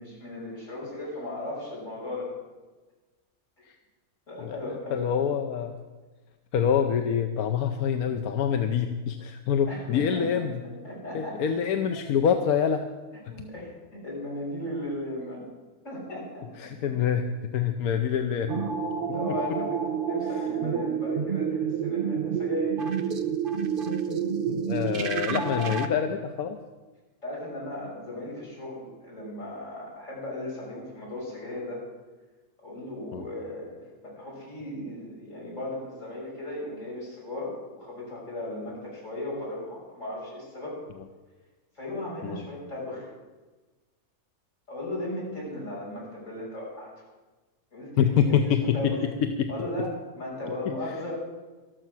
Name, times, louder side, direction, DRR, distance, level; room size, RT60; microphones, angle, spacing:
voice 1, 0.0-2.3 4.3-5.2 9.7-10.4 10.8-11.5 13.3-15.4 15.8-16.9 19.1-19.8 20.1-22.8 27.2-31.8 32.6-33.7 34.0-40.8 41.8-43.1 44.7-46.9 47.7-49.1 49.5-51.1, left 1 dB, 60° left, -5 dB, 6.4 m, -36 dB
voice 2, 4.4-5.8 6.5-10.6 11.1-12.8 16.6-18.6 24.5-26.6 33.1-33.2 42.2-42.5 48.0-49.5 50.9-51.0, left 8 dB, 90° left, 6 dB, 1.3 m, -26 dB
sound 1, 18.5-25.9, right 6 dB, 45° right, 0.9 m, -29 dB
13.0 x 13.0 x 6.2 m, 1.2 s
omnidirectional pair, 1.5 m